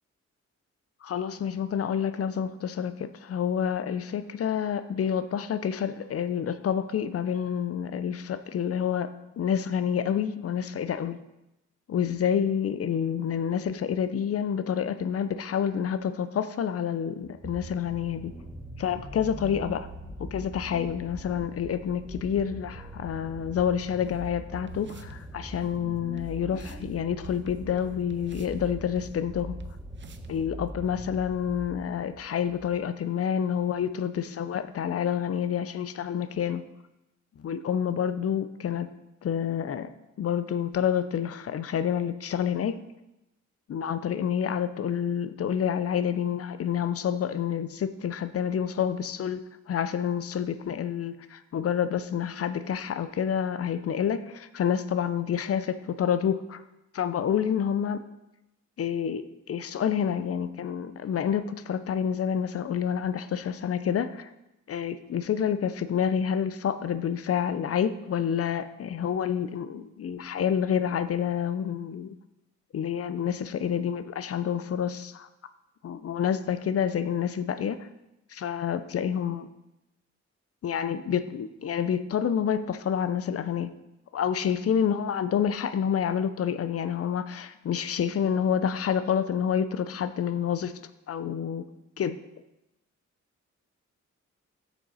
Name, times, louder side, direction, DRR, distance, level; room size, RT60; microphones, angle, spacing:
voice 1, 1.0-11.2 11.9-18.3 18.8-19.9 20.3-29.6 30.3-36.6 37.4-38.9 39.2-39.9 40.2-42.8 43.7-49.4 49.7-56.6 56.9-58.0 58.8-59.2 59.5-64.3 64.7-72.1 72.7-75.3 75.8-77.9 78.3-79.5 80.6-83.7 84.1-90.7 91.1-91.7 92.0-92.2, left 8 dB, 50° left, 12 dB, 0.4 m, -28 dB
sound 1, 17.2-32.8 33.6-33.7, right 1 dB, 10° right, 0.9 m, -42 dB
sound 2, 24.0-24.1 24.7-25.2 25.5-25.6 26.2-26.3 26.5-26.9 27.2-28.6 29.0-29.1 29.6-29.7 30.0-30.3, right 7 dB, 40° right, 0.5 m, -48 dB
7.7 x 6.3 x 4.1 m, 0.94 s
wide cardioid pair, 160°, 30 cm